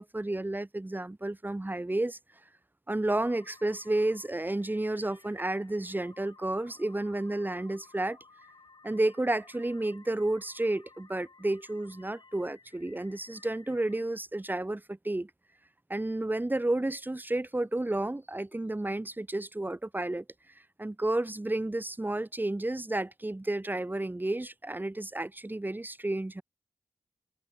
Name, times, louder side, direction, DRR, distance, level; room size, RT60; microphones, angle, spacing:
voice 1, 0.0-2.2 2.9-8.2 8.8-15.3 15.9-20.2 20.8-26.4, right 2 dB, 25° right, 2.1 m, -31 dB
sound 1, 3.1-14.1, left 4 dB, 60° left, 6.6 m, -58 dB
cardioid pair, 55°, 8 cm